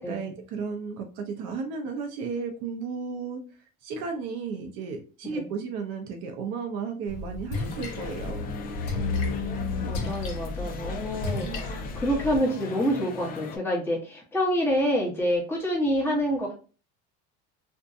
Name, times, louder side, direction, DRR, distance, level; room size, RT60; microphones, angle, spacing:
voice 1, 0.0-3.4 3.8-8.6 11.4-11.6, right 5 dB, 60° right, 3 dB, 0.6 m, -34 dB
Splash splatter, 7.1-12.4, left 3 dB, 60° left, 0.9 m, -33 dB
sound 1, 7.5-13.6, left 4 dB, 30° left, 0.4 m, -39 dB
voice 2, 8.9-16.6, equal, 10° left, -3 dB, 0.9 m, -27 dB
2.6 x 2.2 x 2.5 m, 0.37 s
supercardioid pair, 120°, 29 cm